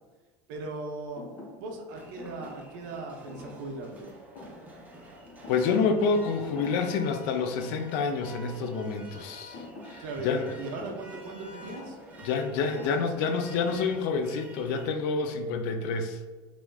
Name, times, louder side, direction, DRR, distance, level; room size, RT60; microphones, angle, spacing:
voice 1, 0.5-1.2 1.6-4.1 10.0-12.0, right 3 dB, 70° right, 2 dB, 0.6 m, -38 dB
Thump thud, 1.2-6.2 6.4-7.1 7.3-13.5, left 2 dB, 50° left, 0.8 m, -48 dB
sound 1, 1.9-14.9, right 1 dB, 15° right, 0.5 m, -48 dB
voice 2, 5.5-9.6 9.8-10.5 12.2-16.2, left 5 dB, 65° left, 6 dB, 0.4 m, -28 dB
3.2 x 2.4 x 2.2 m, 1.3 s
supercardioid pair, 130°, 10 cm